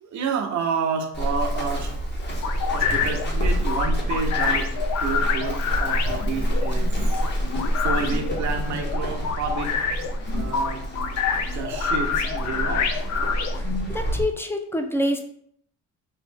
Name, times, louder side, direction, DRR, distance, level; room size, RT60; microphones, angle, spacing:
voice 1, 0.0-1.9 2.7-4.7 5.0-7.2 7.8-9.8 10.3-10.8 11.5-13.1, right 5 dB, 70° right, 4 dB, 0.7 m, -30 dB
Run, 1.1-14.2, equal, 35° left, 0.9 m, -27 dB
sound 1, 2.4-13.9, left 6 dB, 65° left, 0.5 m, -27 dB
voice 2, 13.9-15.2, left 1 dB, 10° left, 5 dB, 0.4 m, -26 dB
3.1 x 2.5 x 3.3 m, 0.66 s
cardioid pair, 90°, 30 cm